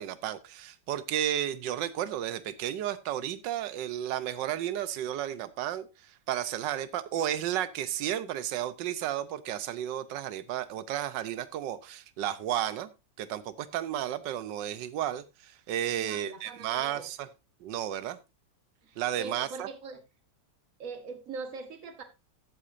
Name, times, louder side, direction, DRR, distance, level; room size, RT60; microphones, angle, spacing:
voice 1, 0.0-12.9 13.2-17.3 17.6-18.2 19.0-19.7, right 11 dB, 70° right, 1.4 m, -33 dB
voice 2, 16.0-17.1 18.8-20.0 20.8-22.0, right 4 dB, 45° right, 1.7 m, -41 dB
14.5 x 8.1 x 2.6 m
omnidirectional pair, 2.1 m